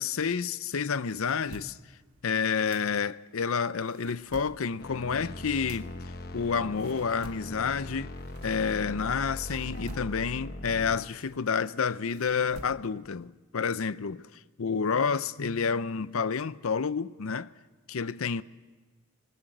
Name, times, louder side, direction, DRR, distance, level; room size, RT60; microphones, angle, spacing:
voice 1, 0.0-1.8 2.2-5.9 6.3-8.1 8.4-17.5 17.9-18.4, left 6 dB, 65° left, 0.6 m, -29 dB
sound 1, 0.9-3.4 3.7-9.0 9.4-13.1, right 2 dB, 80° right, 1.3 m, -50 dB
sound 2, 4.8-11.0, left 1 dB, 45° left, 1.0 m, -40 dB
20.0 x 20.0 x 7.8 m
head